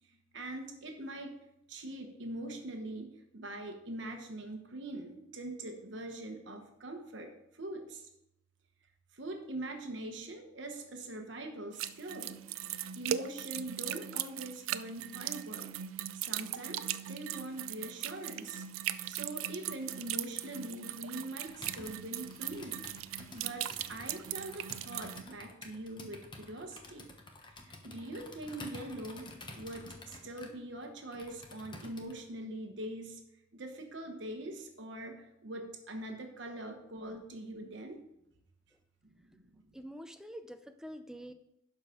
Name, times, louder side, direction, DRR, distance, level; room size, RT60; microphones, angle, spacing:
voice 1, 0.0-1.3 1.7-8.1 9.1-12.3 12.9-15.7 16.1-18.6 19.0-22.8 23.3-27.1 27.5-33.2 33.5-38.0 39.0-39.6, right 1 dB, 60° right, 4 dB, 1.1 m, -43 dB
sound 1, 11.8-25.2, right 11 dB, 90° right, 0.4 m, -39 dB
Computer keyboard, 21.5-32.2, left 2 dB, 25° left, 1.0 m, -50 dB
voice 2, 39.7-41.3, equal, 5° right, 8 dB, 0.5 m, -46 dB
11.5 x 4.8 x 5.1 m, 0.84 s
head